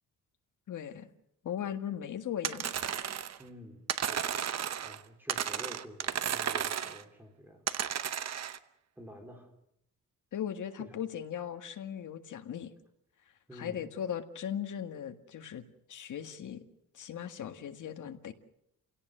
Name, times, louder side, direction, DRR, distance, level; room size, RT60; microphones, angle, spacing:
voice 1, 0.7-1.1 1.4-2.7 10.3-12.7 13.5-15.6 15.9-16.7 16.9-18.3, left 9 dB, 60° left, 7 dB, 1.8 m, -38 dB
sound 1, 2.4-3.4 3.9-5.0 5.3-7.0 7.7-8.6, right 9 dB, 50° right, 0.9 m, -33 dB
voice 2, 3.4-4.4 4.8-7.6 9.0-9.5 10.8-11.0 13.5-13.8, equal, 5° right, 3 dB, 3.8 m, -49 dB
29.5 x 17.5 x 6.7 m, 0.79 s
wide cardioid pair, 155°, 34 cm